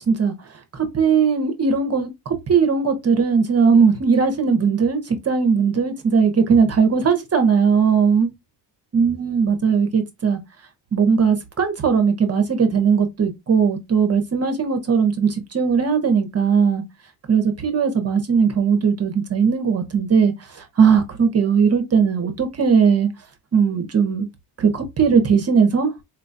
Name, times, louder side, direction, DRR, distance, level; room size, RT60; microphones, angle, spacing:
voice 1, 0.7-8.3 8.9-10.4 10.9-16.8 17.3-20.3 20.8-23.1 23.5-24.3 24.6-26.0, right 6 dB, 35° right, 0.6 m, -18 dB
4.4 x 2.2 x 2.5 m
cardioid pair, 115°, 42 cm